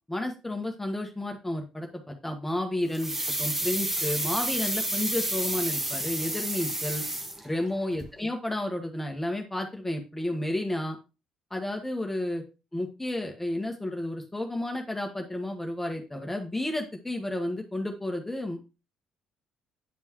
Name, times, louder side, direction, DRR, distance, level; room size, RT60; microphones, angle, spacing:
voice 1, 0.1-7.0 7.4-11.0 11.5-12.4 12.7-18.6, left 1 dB, 10° left, 3 dB, 1.5 m, -31 dB
sound 1, 2.9-7.7 8.0-8.1, right 1 dB, 10° right, 1.4 m, -30 dB
9.5 x 5.4 x 3.1 m, 0.30 s
figure-of-eight pair, 50°, 2 cm